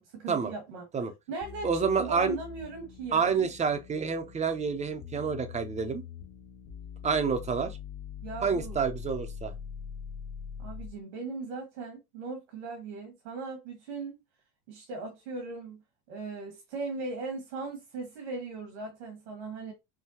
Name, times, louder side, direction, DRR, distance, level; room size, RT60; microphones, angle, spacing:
voice 1, 0.0-0.9 1.3-3.5 8.2-8.8 10.6-14.2 14.7-15.8 16.1-19.7, right 3 dB, 85° right, 1.9 m, -38 dB
sound 1, 1.4-11.0, left 7 dB, 35° left, 0.7 m, -43 dB
voice 2, 1.6-2.4 3.1-6.0 7.0-7.8 8.4-9.5, right 5 dB, 20° right, 0.7 m, -28 dB
5.7 x 2.3 x 2.9 m
supercardioid pair, 120°, 34 cm